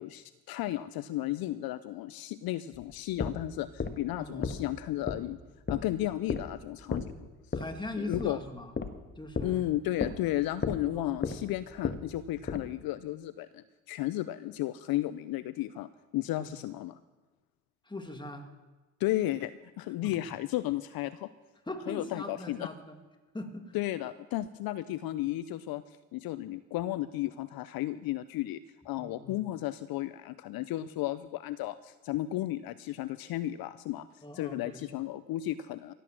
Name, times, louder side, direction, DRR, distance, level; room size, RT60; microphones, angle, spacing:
voice 1, 0.0-5.4 5.7-7.1 7.5-7.6 8.0-8.4 9.4-17.0 19.0-19.5 19.8-21.3 21.9-22.7 23.7-35.9, left 15 dB, 60° left, 15 dB, 0.7 m, -34 dB
sound 1, 2.7-12.8, left 4 dB, 25° left, 1.5 m, -36 dB
voice 2, 4.2-4.5 7.5-8.7 9.2-9.6 10.9-11.4 12.4-12.5 16.4-16.6 17.9-18.5 20.0-20.3 21.7-22.9 23.3-23.7 29.0-29.4 34.2-34.8, left 1 dB, 10° left, 5 dB, 2.5 m, -41 dB
16.5 x 8.4 x 7.5 m, 1.2 s
hypercardioid pair, 60°, 41 cm